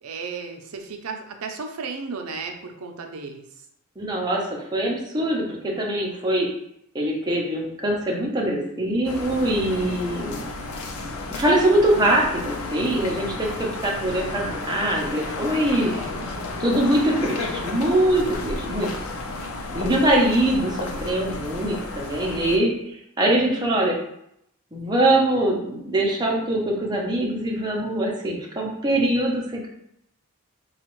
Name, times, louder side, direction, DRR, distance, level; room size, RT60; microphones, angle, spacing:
voice 1, 0.0-3.5 15.7-17.3 19.7-20.0, right 4 dB, 80° right, 4 dB, 0.5 m, -35 dB
voice 2, 4.0-4.4 4.7-6.5 6.9-10.4 11.3-15.9 16.6-18.9 19.7-24.0 24.7-29.7, right 1 dB, 20° right, -2 dB, 0.7 m, -23 dB
sound 1, 9.0-22.6, left 2 dB, 90° left, 0.6 m, -32 dB
4.1 x 2.3 x 3.0 m, 0.76 s
head